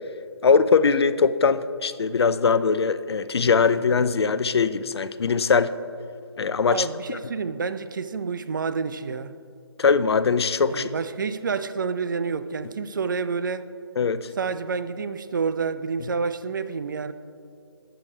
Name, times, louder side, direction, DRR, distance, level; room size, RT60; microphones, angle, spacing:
voice 1, 0.4-5.7 6.4-6.8 9.8-10.9 14.0-14.3, left 5 dB, 70° left, 0.4 m, -21 dB
voice 2, 6.7-9.3 10.7-13.7 14.4-17.1, right 5 dB, 50° right, 0.4 m, -29 dB
8.4 x 7.8 x 3.2 m
figure-of-eight pair, 155°, 14 cm